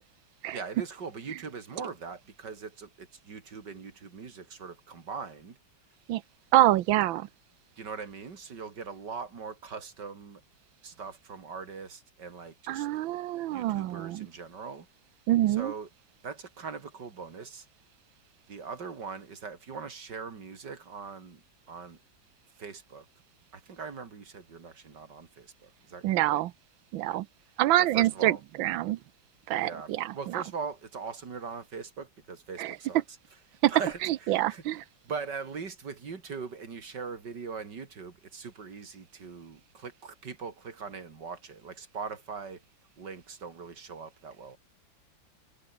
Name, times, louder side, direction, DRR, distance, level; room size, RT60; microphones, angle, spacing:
voice 1, 0.5-5.6 7.8-10.4 10.8-12.9 13.5-14.9 15.6-15.9 16.2-17.7 18.5-21.4 21.7-22.0 22.6-23.1 23.5-26.4 27.1-27.2 27.8-28.4 29.5-33.0 33.7-34.6 35.0-42.6 43.0-44.6, right 5 dB, 60° right, 3.1 m, -41 dB
voice 2, 6.5-7.3 12.7-14.3 15.3-15.7 26.0-26.5 26.9-27.3 27.6-29.0 29.5-30.4 32.6-32.8 33.6-33.7 34.0-34.8, right 14 dB, 85° right, 1.5 m, -26 dB
omnidirectional pair, 2.1 m